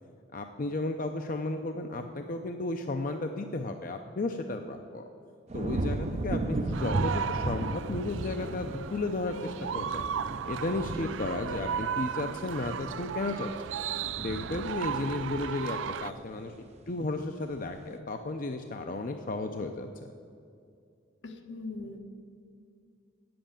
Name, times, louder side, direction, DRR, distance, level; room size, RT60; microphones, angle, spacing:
voice 1, 0.3-5.0 5.5-10.1 10.5-13.5 14.2-16.5 16.9-19.9, left 2 dB, 45° left, 5 dB, 0.6 m, -34 dB
sound 1, 5.5-16.8 17.2-17.7, right 2 dB, 35° right, 0.5 m, -36 dB
sound 2, 6.7-16.1, right 8 dB, 90° right, 0.4 m, -36 dB
voice 2, 21.2-22.0, left 3 dB, 70° left, 5 dB, 1.1 m, -41 dB
9.1 x 7.8 x 8.8 m, 2.5 s
head